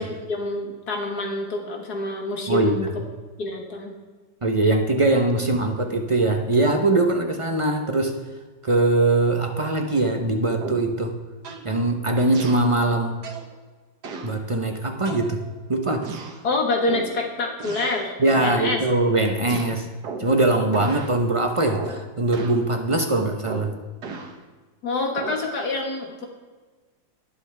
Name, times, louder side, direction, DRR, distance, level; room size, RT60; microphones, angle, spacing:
voice 1, 0.0-2.9 3.4-3.9 16.4-18.1 18.4-18.8 24.8-26.3, left 2 dB, 55° left, 2 dB, 2.0 m, -27 dB
voice 2, 2.5-2.9 4.4-8.2 8.6-11.1 11.6-13.2 14.2-15.4 15.7-16.1 18.2-19.9 20.2-23.7, right 2 dB, 45° right, 3 dB, 0.4 m, -21 dB
sound 1, 10.6-11.0 11.4-11.7 12.3-12.7 13.2-13.5 14.0-14.4 15.1-15.6 16.0-16.4 16.9-17.2 17.6-18.1 18.3-18.6 19.5-20.4 20.7-21.1 21.7-22.0 22.3-22.7 23.5-24.4 25.2-25.5, right 4 dB, 60° right, 1.7 m, -35 dB
20.0 x 7.1 x 3.4 m, 1.4 s
omnidirectional pair, 2.0 m